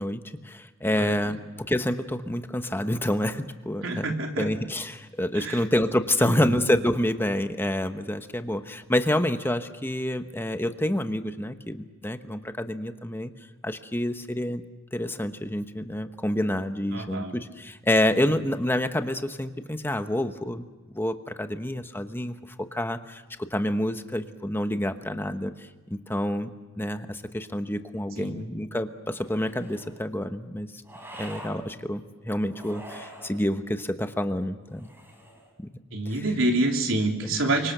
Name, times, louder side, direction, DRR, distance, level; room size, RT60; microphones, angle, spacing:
voice 1, 0.0-1.4 1.7-4.0 4.4-13.3 13.6-14.6 14.9-20.6 20.9-22.3 22.7-23.2 23.5-26.5 26.8-30.7 31.2-34.9 35.6-35.7 36.1-36.2 37.2-37.3, left 1 dB, 10° left, 8 dB, 1.1 m, -28 dB
voice 2, 3.8-4.5 5.3-5.6 6.2-6.6 16.9-17.3 28.2-28.5 35.9-37.7, right 2 dB, 85° right, 2 dB, 3.5 m, -27 dB
sound 1, 29.1-30.0 30.8-31.6 32.5-33.4 34.7-35.5, equal, 10° right, 5.1 m, -44 dB
30.0 x 25.0 x 6.8 m, 1.3 s
head